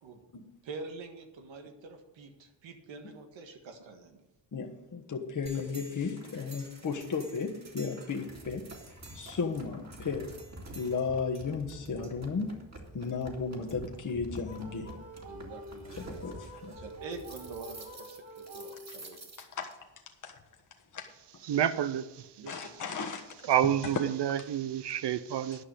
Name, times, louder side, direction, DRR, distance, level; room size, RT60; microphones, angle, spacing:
voice 1, 0.6-4.2 15.3-16.2 16.7-19.3 22.4-22.6, right 3 dB, 90° right, 1.6 m, -45 dB
voice 2, 4.5-8.6 9.1-10.3 10.7-12.6 12.9-14.9 16.0-16.7 18.9-19.0 19.4-19.7 20.2-20.3 20.9-21.1 22.5-23.2 23.6-24.1, left 5 dB, 40° left, 1.4 m, -34 dB
sound 1, 5.5-19.7, right 1 dB, 35° right, 2.6 m, -48 dB
sound 2, 14.5-19.4, equal, 15° right, 1.9 m, -48 dB
voice 3, 21.5-22.1 23.5-25.6, right 10 dB, 65° right, 0.7 m, -28 dB
11.0 x 5.7 x 8.2 m
cardioid pair, 85°, 44 cm